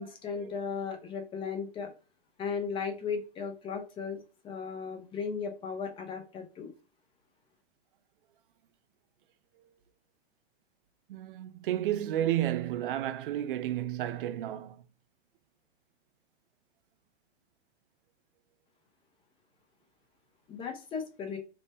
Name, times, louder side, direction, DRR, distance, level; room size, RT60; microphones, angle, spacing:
voice 1, 0.0-1.9 2.4-4.2 4.4-6.7 20.5-21.4, left 6 dB, 15° left, 0.6 m, -36 dB
voice 2, 11.1-14.8, right 12 dB, 50° right, 0.4 m, -32 dB
2.9 x 2.0 x 3.3 m
hypercardioid pair, 115°, 34 cm